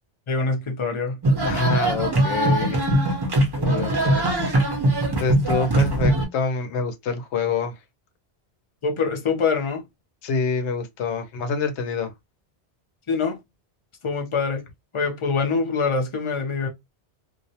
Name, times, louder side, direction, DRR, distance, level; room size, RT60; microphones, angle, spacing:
voice 1, 0.3-1.2 3.6-3.7 8.8-9.8 13.1-13.4 14.0-14.7 14.9-16.7, left 4 dB, 50° left, 0.3 m, -24 dB
sound 1, 1.2-6.2, right 1 dB, 30° right, 0.5 m, -21 dB
voice 2, 1.4-2.8 3.6-4.5 5.2-7.7 10.2-12.1, left 4 dB, 90° left, 0.9 m, -26 dB
2.4 x 2.0 x 2.7 m
omnidirectional pair, 1.1 m